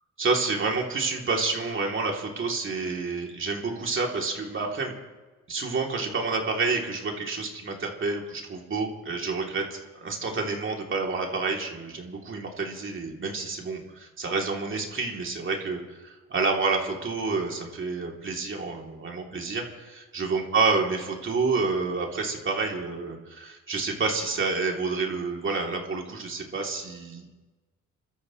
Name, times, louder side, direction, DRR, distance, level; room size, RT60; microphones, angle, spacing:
voice 1, 0.2-5.0 5.5-27.2, right 4 dB, 40° right, 0 dB, 3.1 m, -29 dB
29.0 x 13.5 x 3.2 m, 1.2 s
cardioid pair, 90°, 30 cm